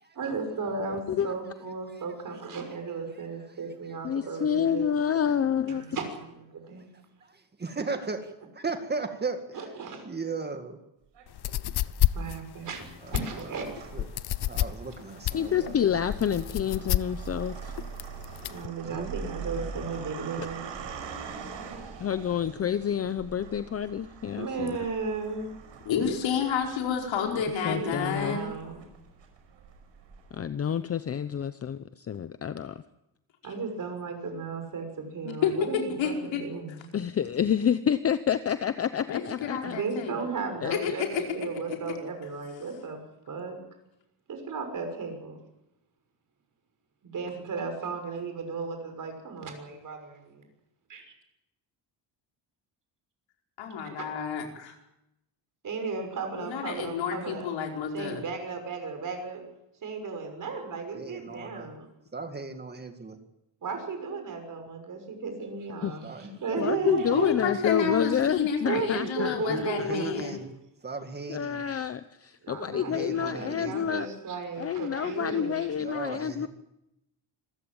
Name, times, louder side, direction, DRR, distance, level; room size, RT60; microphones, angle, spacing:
voice 1, 0.1-4.8 5.7-7.0 9.5-10.0 12.1-12.9 13.1-13.7 18.4-20.6 24.3-25.5 27.7-28.8 33.4-36.9 39.6-43.0 43.3-43.6 44.3-45.4 47.0-50.4 50.9-51.1 54.0-54.1 55.6-57.5 57.9-59.4 59.8-61.9 63.6-67.3 68.6-70.3 72.4-75.7 76.1-76.2, right 4 dB, 45° right, 5 dB, 6.3 m, -35 dB
voice 2, 4.0-5.8 15.3-17.7 22.0-24.8 27.2-28.4 30.3-32.8 36.9-39.8 40.6-40.7 65.8-65.9 66.6-70.1 71.3-74.1 74.6-76.5, left 8 dB, 35° left, 12 dB, 0.8 m, -28 dB
voice 3, 7.2-9.7 10.0-10.8 13.0-13.1 13.6-14.1 14.4-15.7 18.8-19.2 61.0-61.7 62.1-63.2 66.0-66.3 66.7-68.0 69.4-70.5 70.8-71.6 72.8-73.9 75.8-76.5, right 4 dB, 20° right, 7 dB, 2.0 m, -37 dB
sound 1, 11.1-11.9 12.6-30.4, right 5 dB, 75° right, 6.0 m, -43 dB
sound 2, 11.3-18.7, left 14 dB, 60° left, 0.8 m, -29 dB
voice 4, 25.8-28.5 35.4-35.5 36.0-36.4 39.1-40.1 40.7-41.8 53.6-54.7 56.3-58.2 67.1-70.4, left 7 dB, 85° left, 2 dB, 5.1 m, -30 dB
26.0 x 15.5 x 8.8 m, 0.86 s
cardioid pair, 150°, 44 cm